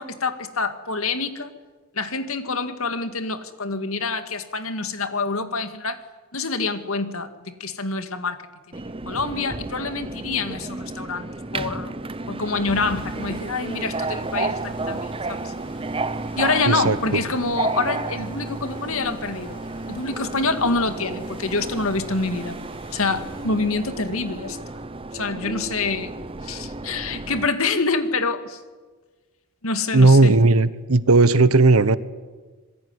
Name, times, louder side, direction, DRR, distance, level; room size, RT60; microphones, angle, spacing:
voice 1, 0.0-1.5 2.0-6.0 6.3-8.4 9.1-11.3 11.5-11.9 12.3-15.5 16.4-19.6 19.9-22.6 22.9-24.8 25.1-26.1 26.4-28.6 29.6-30.4, left 3 dB, 70° left, 9 dB, 2.1 m, -26 dB
Subway metro underground, 8.7-27.5, right 3 dB, 25° right, 0.7 m, -32 dB
sound 1, 12.6-23.5, equal, 25° left, 7.1 m, -46 dB
voice 2, 16.7-17.0 29.9-32.0, right 3 dB, 75° right, 15 dB, 1.1 m, -15 dB
25.5 x 21.5 x 9.8 m, 1.3 s
head